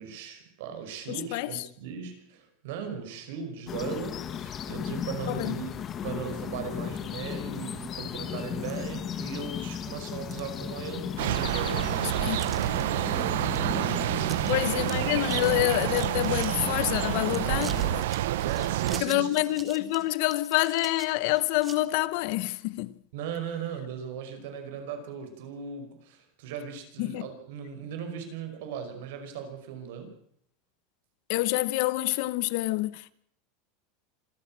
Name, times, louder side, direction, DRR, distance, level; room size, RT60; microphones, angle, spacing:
voice 1, 0.0-5.7 6.0-14.7 18.2-19.3 23.1-30.1, right 7 dB, 65° right, 5.4 m, -38 dB
voice 2, 1.1-1.5 5.3-5.5 12.2-12.4 14.5-17.8 19.0-22.9 27.0-27.3 31.3-33.1, left 18 dB, 50° left, 0.9 m, -27 dB
sound 1, 3.7-18.0, left 8 dB, 20° left, 1.0 m, -36 dB
sound 2, 6.8-7.4 7.9-8.0 8.7-8.8 9.2-9.7 10.1-11.1 11.4-11.5 12.4-12.8 13.2-13.6 13.9-14.0 14.2-14.5 14.8-16.7 17.1-21.8, right 5 dB, 15° right, 1.6 m, -46 dB
sound 3, 11.2-19.0, right 14 dB, 85° right, 0.8 m, -28 dB
26.5 x 13.5 x 7.5 m
supercardioid pair, 175°, 0 cm